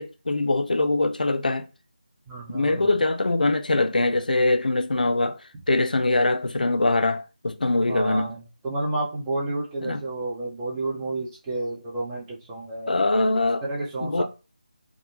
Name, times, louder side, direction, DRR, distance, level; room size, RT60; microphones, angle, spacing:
voice 1, 0.0-1.7 2.5-5.4 5.7-8.4 9.8-10.0 12.9-13.6 14.0-14.2, left 2 dB, 80° left, 0.3 m, -23 dB
voice 2, 2.3-2.9 7.8-12.9 13.6-14.2, right 2 dB, 15° right, 0.5 m, -30 dB
2.1 x 2.0 x 2.9 m
figure-of-eight pair, 160°, 5 cm